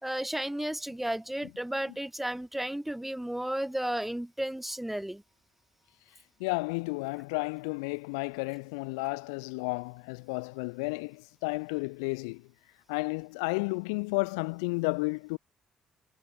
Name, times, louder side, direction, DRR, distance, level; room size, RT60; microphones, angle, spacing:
voice 1, 0.0-5.2, right 1 dB, 5° right, 2.9 m, -33 dB
voice 2, 6.4-12.5 12.9-15.4, left 30 dB, 85° left, 4.5 m, -32 dB
hypercardioid pair, 50°, 3 cm